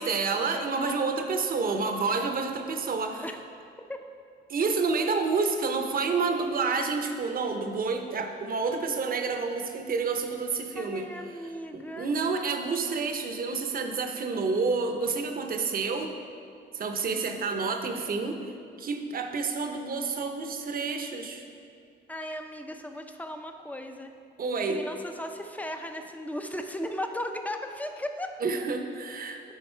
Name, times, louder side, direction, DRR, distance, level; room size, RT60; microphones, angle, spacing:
voice 1, 0.0-3.2 4.5-11.1 11.7-16.1 16.7-18.4 18.8-21.5 24.4-24.8 28.4-29.4, right 4 dB, 45° right, 5 dB, 0.8 m, -29 dB
voice 2, 10.8-12.1 22.1-24.1 24.6-28.4, left 1 dB, 5° left, 5 dB, 0.6 m, -36 dB
11.0 x 4.1 x 4.4 m, 2.4 s
cardioid pair, 90°, 20 cm